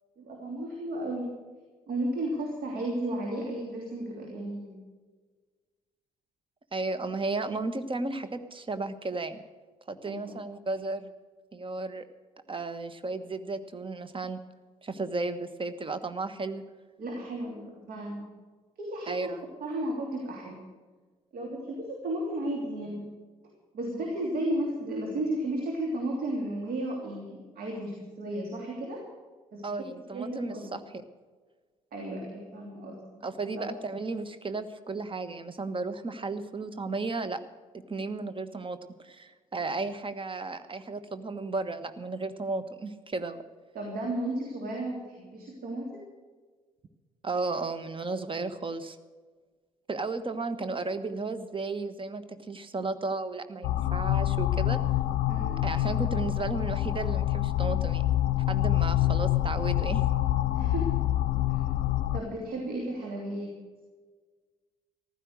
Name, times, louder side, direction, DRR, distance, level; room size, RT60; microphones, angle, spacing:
voice 1, 0.2-1.4 1.9-4.9 10.0-10.3 17.0-18.4 18.8-19.3 19.6-20.6 21.3-23.1 23.7-29.0 29.5-29.8 30.1-30.7 31.9-33.1 33.5-33.7 43.7-46.0 55.3-55.7 60.5-61.0 61.5-61.6 62.1-63.6, right 1 dB, 55° right, 0 dB, 3.0 m, -34 dB
voice 2, 6.7-9.4 9.9-11.1 11.5-12.0 12.5-14.4 14.8-16.6 19.1-19.5 29.6-31.0 33.2-37.4 37.9-38.8 39.0-43.4 47.2-49.0 49.9-54.8 55.6-58.0 58.5-60.0, right 3 dB, 30° right, 12 dB, 1.4 m, -34 dB
sound 1, 53.6-62.2, left 14 dB, 60° left, 0.6 m, -26 dB
15.0 x 12.0 x 6.5 m, 1.4 s
figure-of-eight pair, 45°, 18 cm